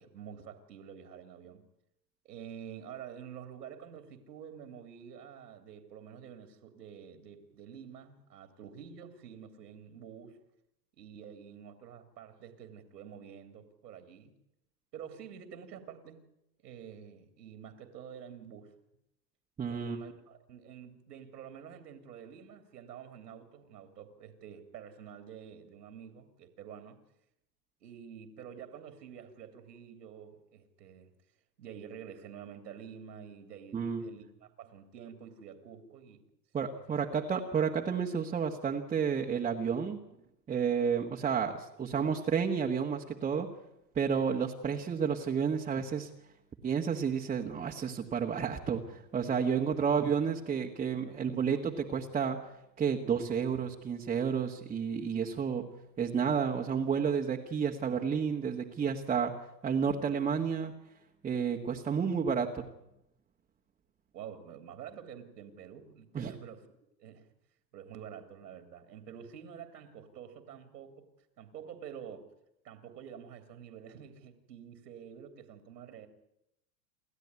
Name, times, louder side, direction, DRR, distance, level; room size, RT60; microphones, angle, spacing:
voice 1, 0.0-1.7 2.2-10.4 11.0-14.3 14.9-16.2 16.6-18.7 19.7-27.0 27.8-31.1 31.6-36.2 36.9-37.0 64.1-66.7 67.0-67.3 67.7-71.1 71.4-72.3 72.6-76.1, right 8 dB, 75° right, 7 dB, 3.2 m, -48 dB
voice 2, 19.6-20.0 33.7-34.0 36.5-40.0 40.5-43.5 43.9-46.1 46.6-52.4 52.8-55.7 56.0-59.3 59.6-60.7 61.2-62.7 66.1-66.3, right 6 dB, 15° right, 0 dB, 1.5 m, -31 dB
28.5 x 13.0 x 9.6 m, 0.85 s
hypercardioid pair, 125°, 50 cm